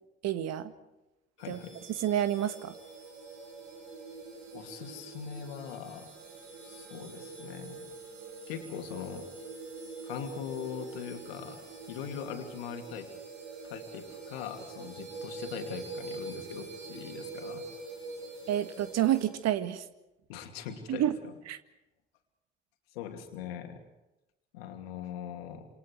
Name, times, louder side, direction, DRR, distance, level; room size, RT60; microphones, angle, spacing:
voice 1, 0.2-0.7 1.5-1.6 2.0-2.7 18.5-19.9 20.9-21.1 21.5-21.6, right 11 dB, 60° right, 12 dB, 1.8 m, -29 dB
voice 2, 1.4-1.8 4.5-6.1 6.6-7.9 8.5-9.3 10.0-13.1 13.6-17.7 20.3-21.0 22.9-23.8 24.5-25.7, left 8 dB, 75° left, 5 dB, 2.8 m, -41 dB
sound 1, 1.4-19.3, right 3 dB, 75° right, 5.5 m, -45 dB
28.0 x 26.5 x 4.8 m, 0.95 s
figure-of-eight pair, 45°, 30 cm